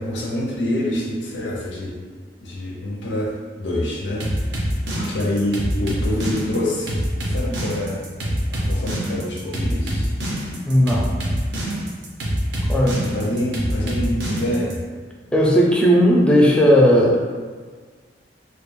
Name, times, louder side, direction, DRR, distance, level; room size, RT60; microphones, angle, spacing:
voice 1, 0.0-2.0 2.4-4.3 4.5-4.6 4.9-8.0 8.5-10.1 13.0-14.8, left 1 dB, 85° left, -3 dB, 0.5 m, -26 dB
sound 1, 4.2-14.7, equal, 70° right, 0.6 m, -25 dB
voice 2, 10.7-11.1 12.7-13.0 15.3-17.2, equal, 5° left, -3 dB, 0.3 m, -15 dB
2.3 x 2.2 x 3.0 m, 1.5 s
head